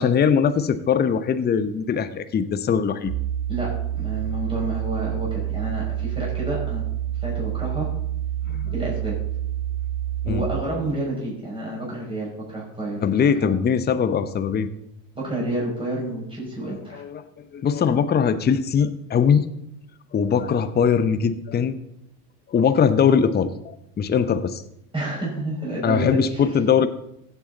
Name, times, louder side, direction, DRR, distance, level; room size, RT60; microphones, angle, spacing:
voice 1, 0.0-3.1 8.5-8.7 10.3-10.4 13.0-14.7 16.6-19.5 20.1-21.8 22.5-24.6 25.8-26.9, left 7 dB, 20° left, 11 dB, 0.8 m, -21 dB
sound 1, 3.0-10.6, right 12 dB, 85° right, 1.9 m, -28 dB
voice 2, 3.5-6.8 7.2-7.9 8.7-9.2 10.2-13.5 15.1-17.0 24.9-26.5, right 1 dB, 10° right, -5 dB, 5.8 m, -29 dB
16.0 x 8.1 x 4.0 m, 0.80 s
hypercardioid pair, 85°, 48 cm